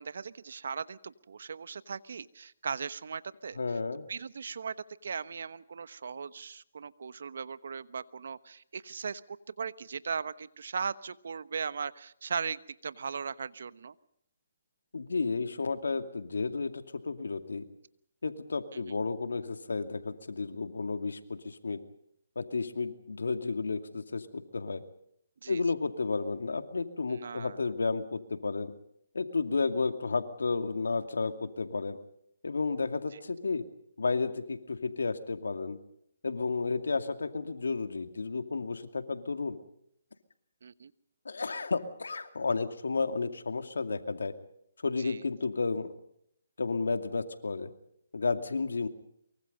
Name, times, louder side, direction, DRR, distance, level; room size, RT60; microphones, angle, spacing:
voice 1, 0.0-3.6 4.1-4.8 5.0-13.9 18.7-18.8 25.4-25.6 27.1-27.6 40.6-40.9 45.0-45.2, right 6 dB, 65° right, 16 dB, 1.1 m, -38 dB
voice 2, 3.6-4.1 14.9-17.7 18.2-21.8 22.4-24.8 25.5-28.7 29.1-32.0 32.4-33.6 34.0-35.8 36.2-39.6 41.2-44.3 44.8-45.9 46.6-47.7 48.1-48.9, left 4 dB, 90° left, 8 dB, 2.3 m, -32 dB
24.0 x 23.5 x 5.4 m, 0.72 s
hypercardioid pair, 155°, 0 cm